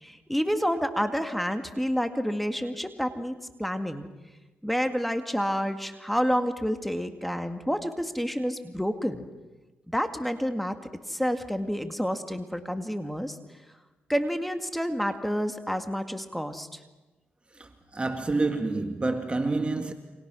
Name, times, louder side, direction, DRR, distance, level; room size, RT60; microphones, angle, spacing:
voice 1, 0.0-4.0 4.6-9.3 9.9-10.8 11.1-13.4 14.1-16.8, equal, ahead, 2.0 m, -29 dB
voice 2, 17.5-19.9, right 3 dB, 25° right, 1.9 m, -28 dB
29.5 x 25.0 x 6.3 m
cardioid pair, 75°, 4 cm